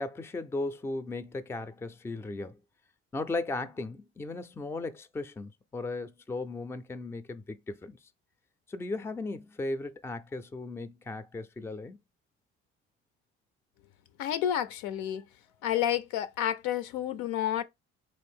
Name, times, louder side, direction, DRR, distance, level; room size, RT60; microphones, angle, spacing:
voice 1, 0.0-2.6 3.1-8.0 8.7-12.0, left 2 dB, 10° left, 0.3 m, -36 dB
voice 2, 14.2-15.2 15.6-17.6, left 10 dB, 80° left, 0.5 m, -30 dB
3.5 x 2.5 x 3.4 m
supercardioid pair, 75°, 30 cm